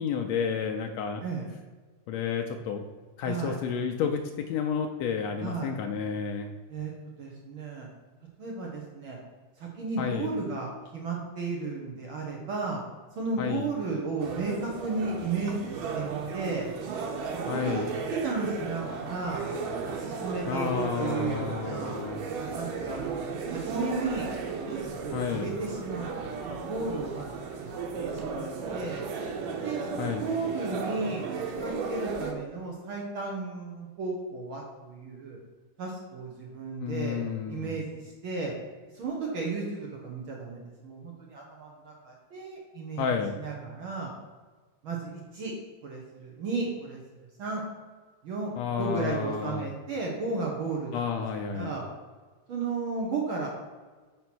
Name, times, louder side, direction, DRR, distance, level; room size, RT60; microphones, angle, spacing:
voice 1, 0.0-1.2 2.1-2.8 3.2-4.2 4.5-6.5 10.0-10.3 13.4-13.7 17.5-17.9 20.5-22.2 25.1-25.5 30.0-30.2 36.8-37.8 43.0-43.4 48.6-49.6 50.9-51.7, left 7 dB, 90° left, 4 dB, 1.5 m, -31 dB
voice 2, 3.2-3.6 5.4-5.7 6.7-7.9 8.4-9.2 9.6-12.8 13.1-16.7 17.2-19.5 19.8-22.0 22.4-24.3 24.7-27.7 28.0-29.0 29.6-31.2 31.6-35.4 35.8-38.5 38.9-43.1 43.3-44.1 44.8-45.5 45.8-47.0 47.4-47.6 48.2-48.5 48.8-51.0 51.4-51.8 52.5-53.5, right 3 dB, 70° right, -1 dB, 1.2 m, -34 dB
sound 1, 14.2-32.3, right 4 dB, 90° right, 2.5 m, -35 dB
5.5 x 4.4 x 6.0 m, 1.4 s
omnidirectional pair, 3.7 m